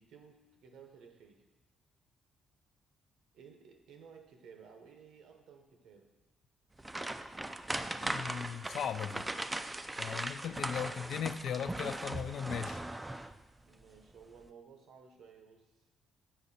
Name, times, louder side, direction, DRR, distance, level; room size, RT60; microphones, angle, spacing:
voice 1, 0.0-1.4 3.3-6.1 13.7-15.8, right 6 dB, 80° right, 5 dB, 1.0 m, -56 dB
sound 1, 6.8-13.5 13.8-14.0 14.4-14.5, right 1 dB, 15° right, 0.4 m, -39 dB
voice 2, 8.0-9.2 10.0-12.8, left 8 dB, 70° left, 11 dB, 0.4 m, -38 dB
8.0 x 5.1 x 4.2 m, 1.2 s
cardioid pair, 90°, 0 cm